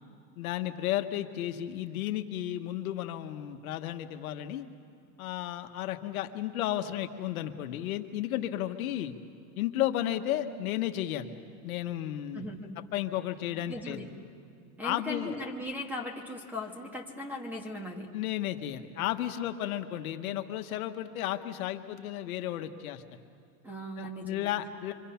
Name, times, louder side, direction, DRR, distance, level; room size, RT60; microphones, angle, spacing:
voice 1, 0.4-4.6 5.2-9.1 9.6-11.3 11.6-12.4 12.9-14.1 14.8-15.4 18.1-23.0 24.0-24.9, left 12 dB, 65° left, 7 dB, 1.3 m, -33 dB
voice 2, 12.3-12.7 13.7-14.1 14.8-18.1 23.6-24.5, left 1 dB, 5° right, 3 dB, 1.4 m, -38 dB
26.5 x 25.5 x 5.8 m, 2.4 s
supercardioid pair, 165°, 45 cm